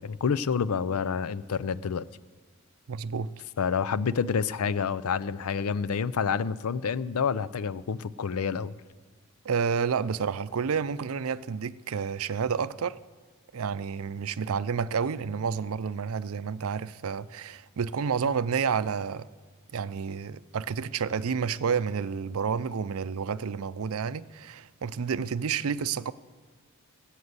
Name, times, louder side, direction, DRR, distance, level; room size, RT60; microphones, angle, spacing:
voice 1, 0.0-2.0 3.6-8.7, left 6 dB, 90° left, 0.5 m, -28 dB
voice 2, 2.9-3.3 9.4-13.0 13.5-19.3 19.7-26.1, right 6 dB, 75° right, 0.5 m, -30 dB
17.0 x 8.2 x 8.1 m
head